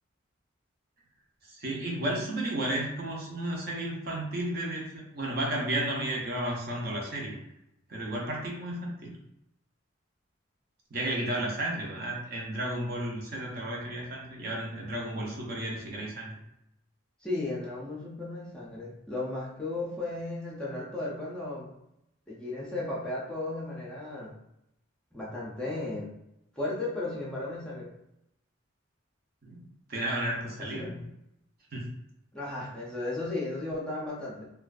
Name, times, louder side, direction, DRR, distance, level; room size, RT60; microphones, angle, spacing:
voice 1, 1.5-7.4 7.9-9.1 10.9-16.3 29.4-29.6 29.9-31.0 31.7-31.9, right 1 dB, 45° right, -2 dB, 0.6 m, -33 dB
voice 2, 17.2-21.7 22.3-24.3 25.1-26.1 26.6-27.9 30.6-31.0 32.3-34.5, left 2 dB, 5° left, -6 dB, 0.4 m, -35 dB
2.4 x 2.2 x 2.4 m, 0.83 s
head